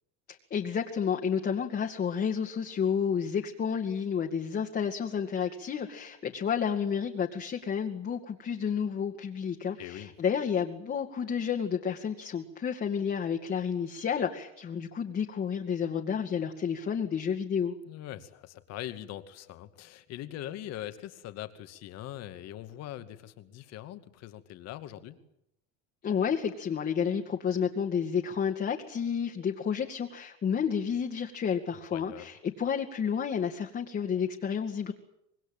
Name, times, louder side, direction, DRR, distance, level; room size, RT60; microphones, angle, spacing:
voice 1, 0.3-17.8 26.0-34.9, left 7 dB, 35° left, 1 dB, 2.4 m, -31 dB
voice 2, 9.8-10.1 17.8-25.2 31.9-32.3, left 13 dB, 60° left, 10 dB, 2.4 m, -42 dB
26.0 x 20.5 x 9.0 m, 0.79 s
supercardioid pair, 120°, 30 cm